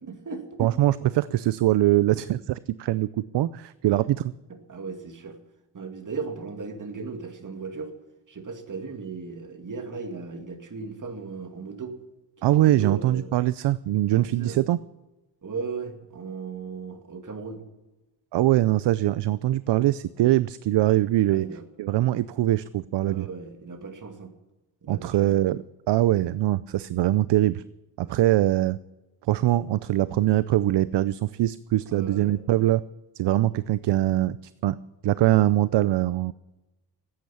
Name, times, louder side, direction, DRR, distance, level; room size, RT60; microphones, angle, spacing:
voice 1, 0.0-0.7 4.5-5.4 5.7-7.9 8.3-11.9 12.4-13.3 14.1-14.6 15.4-17.6 21.3-21.6 23.0-24.3 24.8-25.3 28.0-28.2 31.9-32.4, right 5 dB, 45° right, 6 dB, 2.4 m, -37 dB
voice 2, 0.6-4.3 12.4-14.8 18.3-21.4 21.8-23.3 24.9-27.6 28.0-28.8 29.3-32.8 33.2-34.4 34.6-34.8 35.0-36.3, right 14 dB, 70° right, 17 dB, 0.5 m, -22 dB
14.0 x 9.3 x 8.5 m, 1.0 s
cardioid pair, 85°, 43 cm